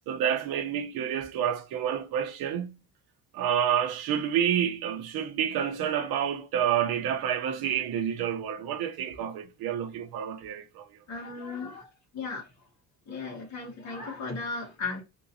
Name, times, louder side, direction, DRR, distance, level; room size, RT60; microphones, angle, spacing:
voice 1, 0.1-2.8 3.3-10.9, right 9 dB, 85° right, 0.8 m, -29 dB
voice 2, 11.1-11.9 12.1-12.4 13.1-15.0, left 4 dB, 50° left, 1.6 m, -36 dB
3.7 x 2.7 x 2.6 m
cardioid pair, 165°, 36 cm